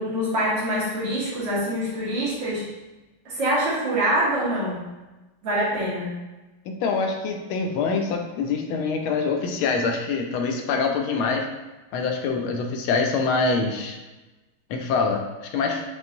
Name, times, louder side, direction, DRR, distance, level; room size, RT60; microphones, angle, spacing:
voice 1, 0.0-2.7 3.3-4.8 5.4-6.2, right 1 dB, 65° right, -7 dB, 1.8 m, -25 dB
voice 2, 6.8-11.5 11.9-14.0 14.7-15.2 15.5-15.8, left 4 dB, 80° left, 3 dB, 1.4 m, -24 dB
5.3 x 2.6 x 2.6 m, 1.1 s
omnidirectional pair, 2.3 m